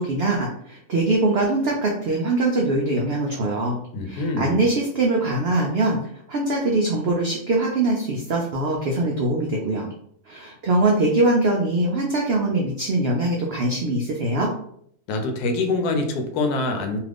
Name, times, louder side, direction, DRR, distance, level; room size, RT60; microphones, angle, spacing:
voice 1, 0.0-3.7 4.1-6.0 6.3-9.9 10.3-14.5, right 2 dB, 90° right, -1 dB, 0.5 m, -22 dB
voice 2, 3.9-4.6 15.1-17.0, left 3 dB, 85° left, 5 dB, 1.1 m, -25 dB
2.7 x 2.4 x 3.3 m, 0.68 s
omnidirectional pair, 1.6 m